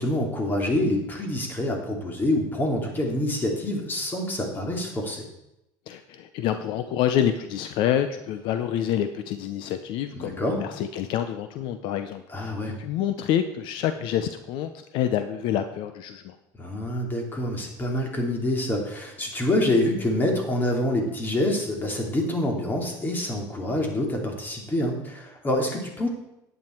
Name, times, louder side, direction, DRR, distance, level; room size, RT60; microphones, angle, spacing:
voice 1, 0.0-5.2 10.1-10.6 12.3-12.8 16.6-26.1, left 1 dB, 20° left, 2 dB, 2.7 m, -26 dB
voice 2, 5.9-16.4, left 10 dB, 70° left, 9 dB, 0.7 m, -27 dB
11.0 x 9.3 x 4.5 m, 0.86 s
cardioid pair, 120°, 9 cm